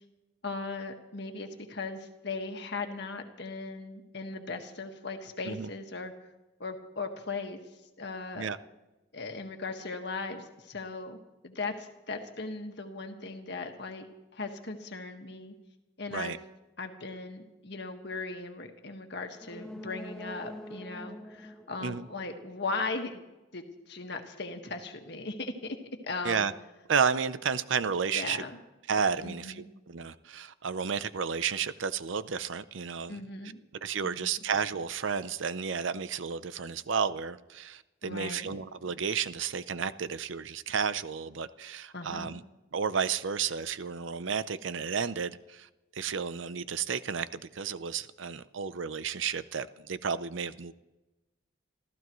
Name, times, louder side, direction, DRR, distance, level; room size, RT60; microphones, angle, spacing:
voice 1, 0.4-6.1 6.6-7.6 8.0-8.5 9.1-11.2 11.4-14.1 14.3-15.5 16.0-16.3 16.8-23.2 23.5-25.8 26.0-26.5 28.1-28.6 29.2-29.7 33.1-33.6 34.0-34.4 38.0-38.6 41.9-42.3, left 3 dB, 60° left, 1.7 m, -38 dB
sound 1, 19.3-23.0 23.4-23.5, equal, 5° left, 0.6 m, -46 dB
voice 2, 26.9-28.4 28.9-33.2 33.8-42.4 42.7-50.7, right 6 dB, 70° right, 0.6 m, -32 dB
27.0 x 15.0 x 3.1 m
head